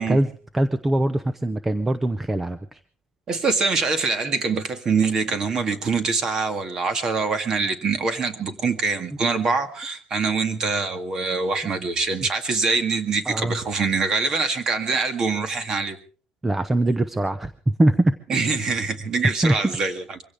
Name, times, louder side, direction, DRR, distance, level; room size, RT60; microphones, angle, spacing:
voice 1, 0.0-2.8 13.3-13.6 16.4-18.1 19.4-19.5, right 1 dB, 10° right, 0.7 m, -22 dB
voice 2, 3.3-16.0 18.3-20.0, right 4 dB, 30° right, 2.0 m, -24 dB
24.0 x 16.5 x 3.6 m
cardioid pair, 175°, 2 cm